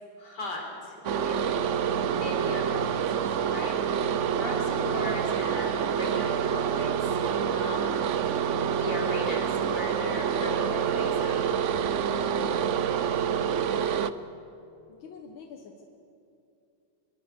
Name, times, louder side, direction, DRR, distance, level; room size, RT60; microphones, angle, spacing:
voice 1, 0.2-1.6 2.0-3.8 4.4-8.0 8.7-11.4, equal, 55° left, 1 dB, 4.9 m, -37 dB
sound 1, 1.0-14.1, right 7 dB, 70° right, 0.7 m, -27 dB
voice 2, 14.9-15.8, left 5 dB, 80° left, 3 dB, 2.1 m, -46 dB
24.5 x 22.0 x 6.8 m, 2.7 s
omnidirectional pair, 2.1 m